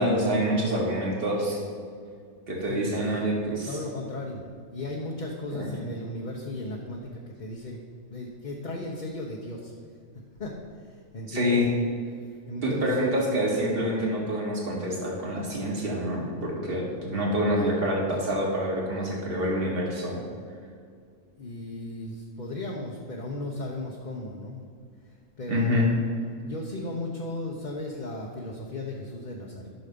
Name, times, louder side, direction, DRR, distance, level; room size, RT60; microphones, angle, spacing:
voice 1, 0.0-1.6 2.5-3.7 5.5-5.6 11.3-11.7 12.6-20.2 25.5-25.9, equal, 45° right, -3 dB, 2.1 m, -26 dB
voice 2, 2.7-3.1 3.7-7.8 8.1-9.7 10.4-11.6 12.5-13.2 13.9-14.0 16.9-17.3 17.6-17.9 21.3-24.6 25.0-25.9 26.4-29.7, left 1 dB, 40° left, -1 dB, 1.0 m, -36 dB
12.0 x 6.4 x 5.3 m, 2.2 s
omnidirectional pair, 1.4 m